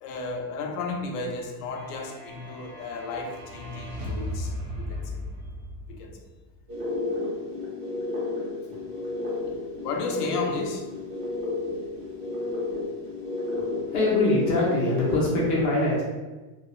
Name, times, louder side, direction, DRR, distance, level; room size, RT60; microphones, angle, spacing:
voice 1, 0.0-4.5 4.8-5.2 5.9-6.2 9.8-10.9, left 3 dB, 80° left, 3 dB, 0.6 m, -33 dB
sound 1, 1.7-6.4, left 1 dB, 45° right, 0.7 m, -36 dB
sound 2, 6.7-15.2, left 3 dB, 70° right, 1.4 m, -32 dB
voice 2, 13.8-16.0, left 2 dB, 35° left, -5 dB, 0.5 m, -23 dB
2.9 x 2.2 x 2.3 m, 1.2 s
supercardioid pair, 165°, 46 cm